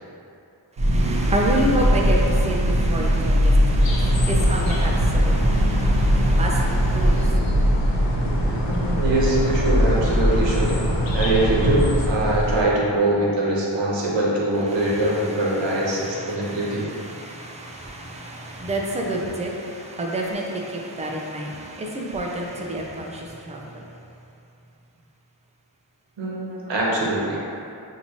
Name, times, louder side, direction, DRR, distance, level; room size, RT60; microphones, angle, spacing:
voice 1, 0.8-7.4 14.7-23.8, right 1 dB, 15° right, -1 dB, 0.5 m, -29 dB
sound 1, 0.8-12.6, equal, 55° right, 0.8 m, -20 dB
sound 2, 3.8-12.1, left 2 dB, 80° left, 0.7 m, -31 dB
voice 2, 8.6-10.7 11.1-16.9 26.2-27.4, right 1 dB, 80° right, -5 dB, 1.0 m, -23 dB
5.8 x 2.7 x 2.9 m, 2.7 s
wide cardioid pair, 80°, 43 cm